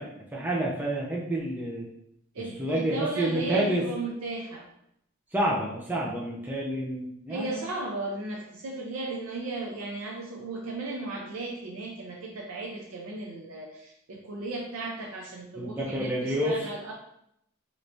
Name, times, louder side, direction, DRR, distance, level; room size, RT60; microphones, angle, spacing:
voice 1, 0.0-1.9 2.6-3.8 5.3-7.6 15.6-16.7, right 1 dB, 10° right, -4 dB, 0.4 m, -29 dB
voice 2, 2.3-4.6 7.3-16.9, right 2 dB, 90° right, -1 dB, 0.5 m, -35 dB
3.3 x 3.0 x 2.6 m, 0.76 s
head